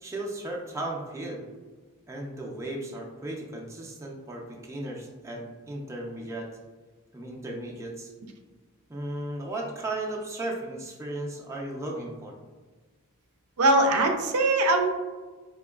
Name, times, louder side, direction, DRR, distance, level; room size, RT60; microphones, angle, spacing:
voice 1, 0.0-1.5 2.1-6.5 7.1-8.1 8.9-12.3, right 1 dB, 15° right, -2 dB, 0.4 m, -35 dB
voice 2, 13.6-14.9, right 2 dB, 80° right, 4 dB, 0.5 m, -21 dB
4.1 x 2.9 x 2.3 m, 1.3 s
head